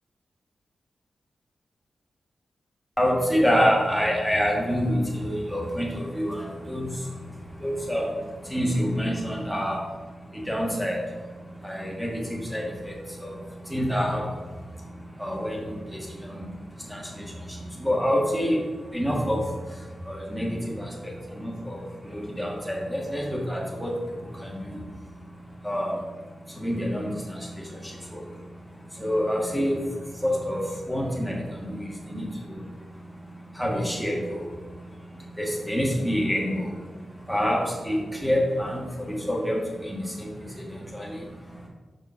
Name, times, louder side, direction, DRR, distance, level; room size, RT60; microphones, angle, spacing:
voice 1, 3.0-41.7, equal, ahead, -3 dB, 1.4 m, -28 dB
6.3 x 5.0 x 4.4 m, 1.3 s
wide cardioid pair, 160°, 0 cm